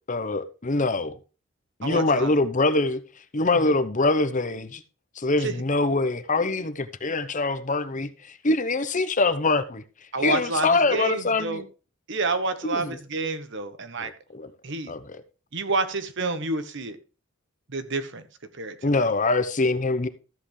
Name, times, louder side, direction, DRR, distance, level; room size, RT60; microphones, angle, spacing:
voice 1, 0.1-1.2 1.8-3.0 3.3-4.8 5.2-9.8 10.2-11.6 12.6-13.0 14.0-14.5 14.9-15.2 18.8-20.1, left 3 dB, 40° left, 0.9 m, -24 dB
voice 2, 1.8-2.4 3.6-3.7 5.4-5.5 10.1-11.6 12.1-14.1 14.6-14.9 15.5-17.0 17.7-18.2 18.6-19.1, right 3 dB, 60° right, 1.3 m, -29 dB
14.0 x 7.8 x 3.2 m
head